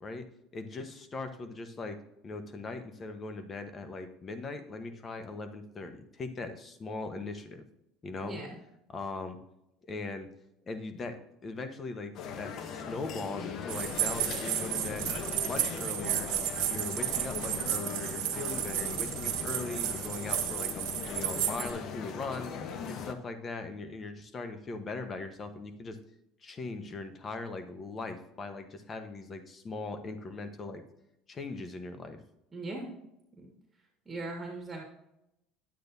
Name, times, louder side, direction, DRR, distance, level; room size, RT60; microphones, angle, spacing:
voice 1, 0.5-2.0 2.2-7.6 8.0-8.4 8.9-9.4 9.9-10.3 10.6-15.1 15.4-16.3 16.7-22.5 22.9-26.0 26.4-30.8 31.3-32.2, left 3 dB, 30° left, 8 dB, 1.1 m, -40 dB
voice 2, 8.2-8.6 32.5-32.9 33.4-33.5 34.1-34.8, right 2 dB, 20° right, -1 dB, 1.9 m, -39 dB
sound 1, 12.1-23.1, left 6 dB, 55° left, 0.8 m, -39 dB
sound 2, 13.7-21.7, right 12 dB, 70° right, 1.4 m, -33 dB
10.0 x 8.7 x 2.7 m, 0.84 s
supercardioid pair, 100°, 0 cm